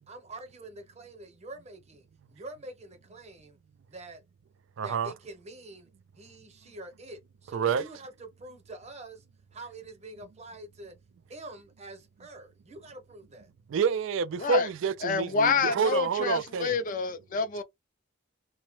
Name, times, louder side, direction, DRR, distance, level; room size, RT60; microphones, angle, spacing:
voice 1, 0.1-3.6 3.9-4.2 4.8-9.2 9.5-10.9 11.3-13.5, right 2 dB, 35° right, 0.9 m, -46 dB
voice 2, 4.8-5.1 7.5-7.8 13.7-16.7, right 6 dB, 70° right, 0.3 m, -28 dB
voice 3, 15.0-17.6, left 5 dB, 45° left, 0.4 m, -27 dB
2.8 x 2.1 x 3.0 m
head